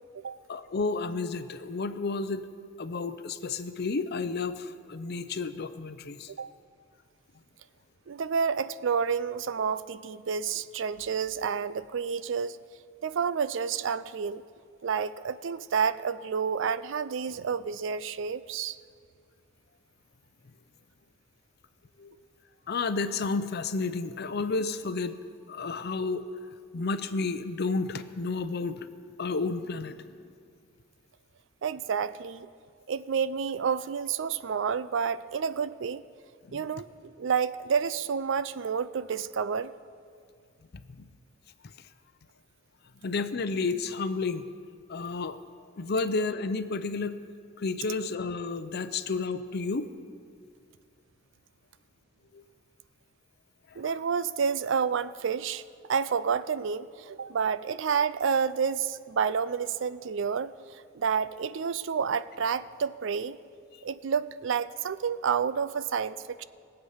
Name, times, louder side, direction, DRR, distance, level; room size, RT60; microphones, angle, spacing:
voice 1, 0.5-2.5 2.8-6.3 22.0-22.2 22.7-25.1 25.5-26.2 26.7-28.9 29.2-30.0 36.5-36.6 41.0-41.1 43.0-44.4 44.9-45.4 45.8-47.2 47.6-49.9 52.3-52.4, left 4 dB, 55° left, 11 dB, 0.6 m, -31 dB
voice 2, 8.1-12.6 13.0-14.4 14.8-18.8 31.6-32.5 32.9-36.0 36.5-39.7 53.8-55.6 55.9-60.5 61.0-63.4 63.8-66.4, right 6 dB, 65° right, 15 dB, 0.4 m, -29 dB
20.5 x 8.0 x 5.6 m, 2.2 s
head